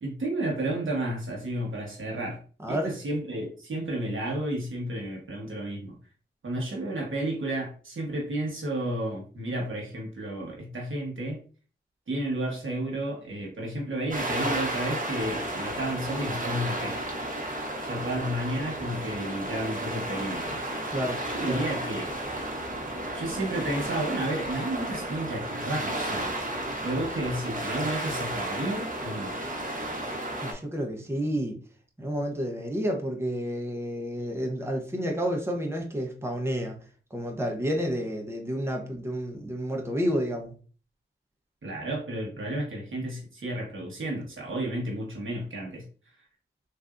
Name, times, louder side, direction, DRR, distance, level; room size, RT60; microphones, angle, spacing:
voice 1, 0.0-2.4 2.7-6.0 6.4-11.4 12.1-17.0 17.8-20.6 21.2-22.1 23.1-26.4 26.8-29.4 41.6-45.8, right 1 dB, 75° right, -1 dB, 1.1 m, -32 dB
voice 2, 2.6-2.9 20.9-21.2 21.5-21.6 30.4-31.5 32.0-36.8 37.1-40.5, equal, 10° right, 2 dB, 0.8 m, -30 dB
sound 1, 14.1-30.5, right 1 dB, 40° right, 0.9 m, -33 dB
3.3 x 2.6 x 2.5 m, 0.39 s
cardioid pair, 40°, 21 cm